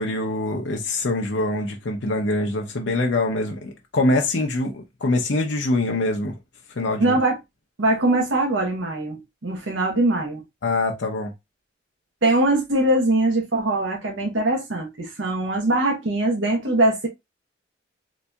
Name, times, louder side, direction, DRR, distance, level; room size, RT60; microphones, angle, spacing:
voice 1, 0.0-6.3 6.8-7.2 10.6-11.3, left 2 dB, 65° left, 0.7 m, -24 dB
voice 2, 7.0-7.4 7.8-10.4 12.2-17.1, right 2 dB, 75° right, 0.9 m, -22 dB
4.0 x 2.6 x 2.2 m
head